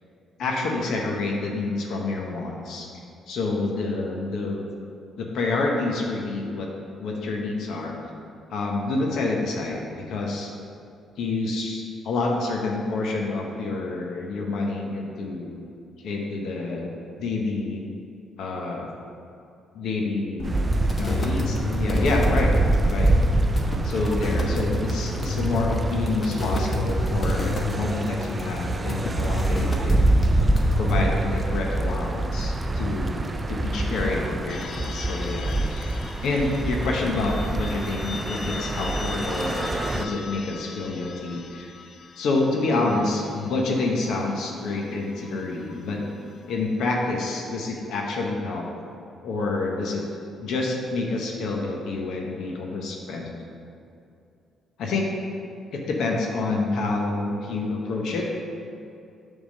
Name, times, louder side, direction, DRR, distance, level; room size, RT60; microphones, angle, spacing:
voice 1, 0.4-2.9 3.3-4.6 5.2-6.7 7.0-7.9 8.5-10.5 11.2-15.6 16.0-17.8 18.4-18.9 19.7-20.7 21.0-22.5 22.8-23.1 23.8-30.0 30.3-30.5 30.8-33.2 33.5-35.9 36.2-39.7 39.9-41.7 42.2-46.0 46.5-48.6 49.2-50.0 50.4-53.4 54.8-55.1 55.7-58.3, left 3 dB, 75° left, 0 dB, 0.9 m, -28 dB
sound 1, 20.4-31.1, left 1 dB, 35° left, 1.0 m, -28 dB
sound 2, 20.4-40.0, right 2 dB, 25° right, 0.4 m, -26 dB
sound 3, 34.5-47.0, left 5 dB, 55° left, 0.5 m, -41 dB
7.0 x 3.6 x 6.4 m, 2.5 s
cardioid pair, 90°, 0 cm